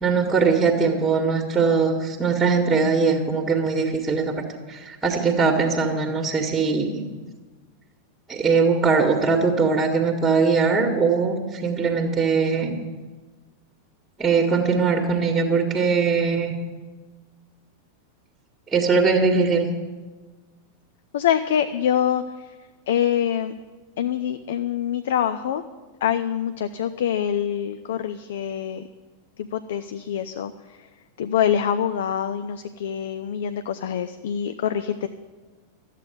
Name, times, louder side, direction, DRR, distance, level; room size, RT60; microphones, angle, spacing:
voice 1, 0.0-4.3 4.7-7.0 8.3-12.8 14.2-16.5 18.7-19.7, right 5 dB, 10° right, 2 dB, 1.7 m, -21 dB
voice 2, 21.1-22.6 22.9-23.5 24.0-25.6 26.0-28.9 29.4-30.9 31.2-35.1, left 9 dB, 60° left, 11 dB, 0.5 m, -25 dB
13.0 x 8.3 x 9.1 m, 1.3 s
figure-of-eight pair, 90°, 0 cm